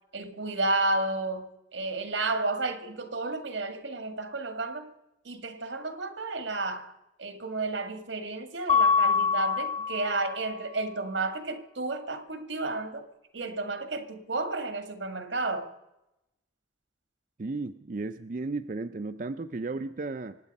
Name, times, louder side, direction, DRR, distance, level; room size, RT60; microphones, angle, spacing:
voice 1, 0.1-4.9 5.3-6.9 7.2-13.1 13.3-15.7, right 2 dB, 90° right, 1.8 m, -32 dB
Mallet percussion, 8.7-10.5, left 6 dB, 35° left, 1.2 m, -25 dB
voice 2, 17.4-20.4, right 3 dB, 45° right, 0.5 m, -34 dB
25.0 x 9.4 x 5.3 m
head